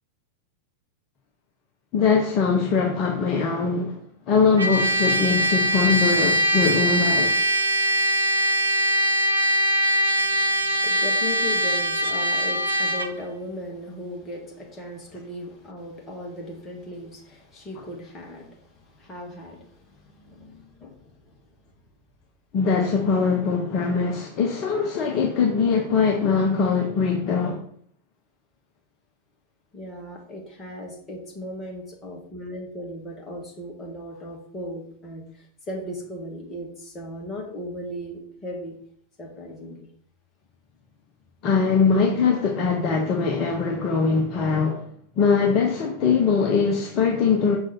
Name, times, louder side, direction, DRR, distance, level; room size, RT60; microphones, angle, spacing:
voice 1, 1.9-4.0 4.3-7.4 22.5-27.6 41.4-44.9 45.2-47.6, left 5 dB, 35° left, 0.9 m, -22 dB
Trumpet, 4.6-13.1, equal, 75° right, 0.6 m, -22 dB
voice 2, 10.1-21.5 29.7-38.8 39.2-39.9, left 1 dB, 20° left, 1.8 m, -37 dB
6.2 x 4.6 x 4.4 m
figure-of-eight pair, 90°, 0 cm